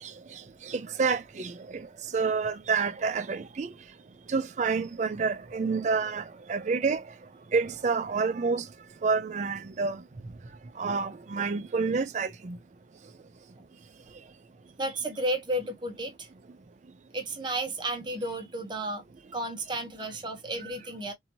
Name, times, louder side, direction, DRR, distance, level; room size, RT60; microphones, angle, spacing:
voice 1, 0.0-3.7 4.3-7.0 7.5-8.7 9.0-10.0 10.8-12.6, right 4 dB, 40° right, 0.4 m, -29 dB
voice 2, 14.8-16.3 17.1-19.0 19.3-21.1, right 1 dB, 25° right, 0.8 m, -32 dB
2.8 x 2.7 x 2.7 m
head